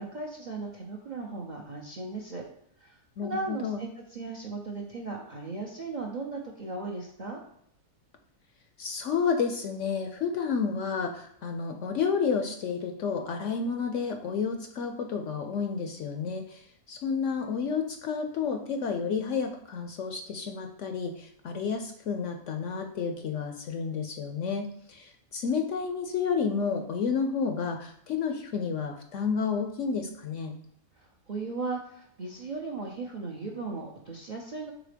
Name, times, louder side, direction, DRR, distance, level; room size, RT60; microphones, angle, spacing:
voice 1, 0.0-2.4 2.8-7.4 31.0-34.7, right 3 dB, 50° right, 1 dB, 0.6 m, -37 dB
voice 2, 3.2-3.8 8.8-30.6, left 5 dB, 65° left, 5 dB, 0.8 m, -31 dB
4.9 x 3.9 x 5.0 m, 0.71 s
omnidirectional pair, 1.6 m